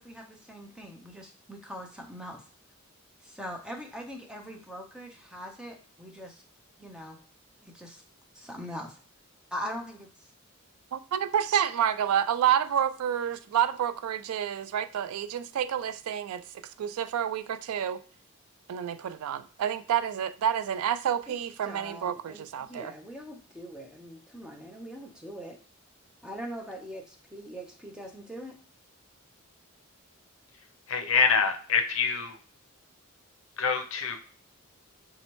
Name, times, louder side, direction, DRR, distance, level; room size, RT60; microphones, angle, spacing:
voice 1, 0.0-2.4 3.2-6.4 6.8-7.2 7.6-8.0 8.3-9.0 9.5-10.1 21.3-21.4 21.6-25.6 26.2-28.6, equal, 5° right, 0.5 m, -42 dB
voice 2, 10.9-18.0 18.7-22.9, right 9 dB, 85° right, 0.3 m, -29 dB
voice 3, 30.9-32.4 33.6-34.2, left 5 dB, 65° left, 0.5 m, -25 dB
3.3 x 3.1 x 3.0 m
head